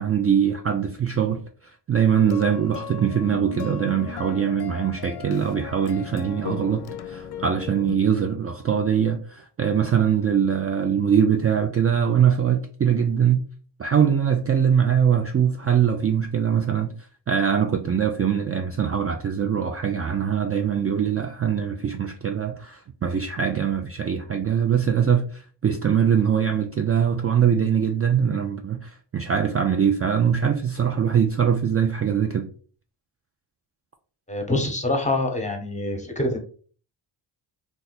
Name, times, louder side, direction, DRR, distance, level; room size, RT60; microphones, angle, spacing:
voice 1, 0.0-13.4 13.8-16.9 17.3-32.5, right 8 dB, 30° right, 0.4 m, -22 dB
sound 1, 2.1-7.9, left 7 dB, 55° left, 0.6 m, -37 dB
voice 2, 34.3-36.4, left 2 dB, 15° left, 1.0 m, -25 dB
2.7 x 2.4 x 4.1 m
cardioid pair, 60°, 47 cm